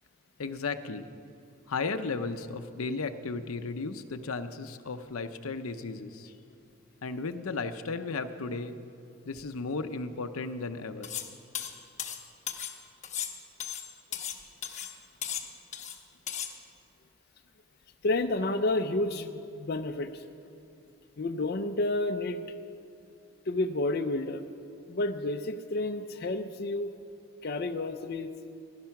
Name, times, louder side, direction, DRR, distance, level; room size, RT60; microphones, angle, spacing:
voice 1, 0.4-1.1 1.7-6.3 7.0-8.8 9.2-11.1, left 4 dB, 85° left, 9 dB, 0.7 m, -35 dB
sound 1, 11.0-11.3 11.5-12.8 13.0-14.4 14.6-14.9 15.2-16.0 16.3-16.5, left 9 dB, 35° left, 1.0 m, -36 dB
voice 2, 18.0-20.2 21.2-22.4 23.5-24.5 24.9-26.9 27.4-28.3, left 2 dB, 50° left, 6 dB, 0.5 m, -30 dB
16.5 x 11.5 x 5.8 m, 2.5 s
head